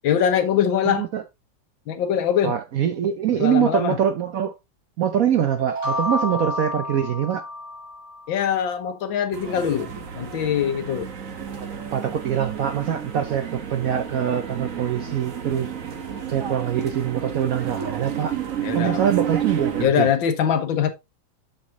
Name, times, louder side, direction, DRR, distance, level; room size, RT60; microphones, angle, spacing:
voice 1, 0.0-1.1 1.9-2.6 3.4-4.0 8.3-11.1 18.6-19.0 19.8-20.9, left 8 dB, 80° left, 1.9 m, -22 dB
voice 2, 0.9-1.2 2.4-4.5 5.0-7.5 11.6-15.7 16.3-18.3 18.7-20.1, right 9 dB, 65° right, 0.9 m, -24 dB
sound 1, 5.6-8.4, left 1 dB, 85° right, 3.8 m, -29 dB
sound 2, 9.3-19.9, right 8 dB, 45° right, 1.4 m, -31 dB
7.4 x 6.9 x 2.9 m
omnidirectional pair, 2.1 m